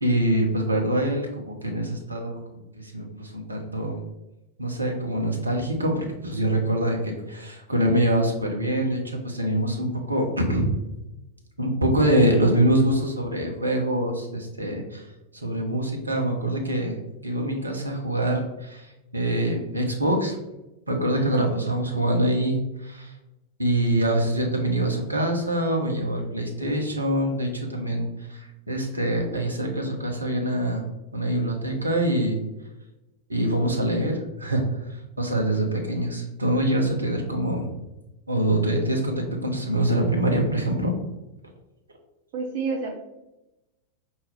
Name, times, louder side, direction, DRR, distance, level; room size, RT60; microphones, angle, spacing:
voice 1, 0.0-4.0 4.6-10.7 11.6-15.0 15.3-20.4 20.9-23.1 23.6-30.8 31.1-32.4 33.3-34.8 35.2-37.7 38.3-40.9, right 1 dB, 80° right, 2 dB, 0.9 m, -25 dB
voice 2, 21.1-21.5 42.3-43.0, right 4 dB, 50° right, 3 dB, 0.6 m, -30 dB
5.8 x 2.7 x 3.4 m, 0.96 s
figure-of-eight pair, 90°, 0 cm